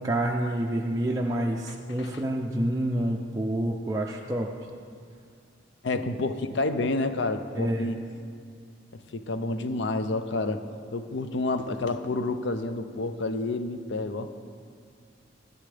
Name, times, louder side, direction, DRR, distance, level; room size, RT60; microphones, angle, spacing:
voice 1, 0.0-4.5 7.5-7.9, right 1 dB, 20° right, -1 dB, 0.5 m, -28 dB
voice 2, 1.7-2.2 5.8-8.0 9.1-10.6 10.9-14.3, left 2 dB, 65° left, 10 dB, 0.5 m, -29 dB
13.5 x 11.0 x 3.4 m, 2.2 s
head